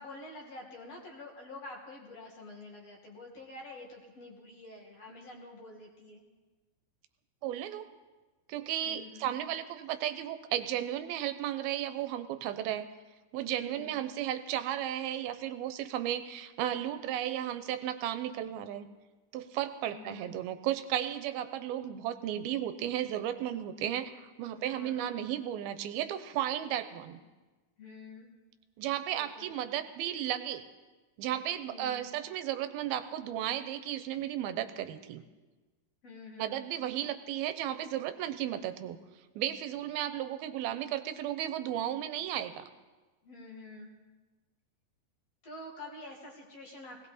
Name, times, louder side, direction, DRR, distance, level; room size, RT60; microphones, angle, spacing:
voice 1, 0.0-6.2 8.8-9.3 13.4-14.0 19.8-20.4 24.5-25.2 27.8-28.3 29.1-29.5 31.7-32.1 36.0-36.6 43.2-44.0 45.4-47.1, left 2 dB, 50° left, 0 dB, 2.7 m, -48 dB
voice 2, 7.4-7.9 8.5-12.8 13.3-18.9 19.3-27.2 28.8-30.6 31.2-35.2 36.4-39.0 39.4-42.6, right 11 dB, 85° right, 10 dB, 2.6 m, -34 dB
19.0 x 18.0 x 4.1 m, 1.2 s
omnidirectional pair, 4.3 m